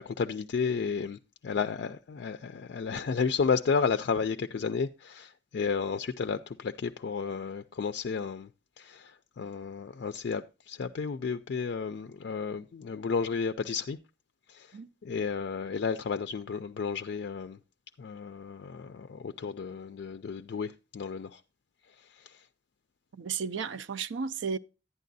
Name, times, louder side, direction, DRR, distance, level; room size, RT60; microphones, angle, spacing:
voice 1, 0.0-8.5 8.8-14.0 14.5-14.8 15.0-17.6 18.0-21.4 22.2-22.4, left 5 dB, 60° left, 0.3 m, -32 dB
voice 2, 23.1-24.6, right 6 dB, 75° right, 0.4 m, -33 dB
11.0 x 9.3 x 2.6 m
head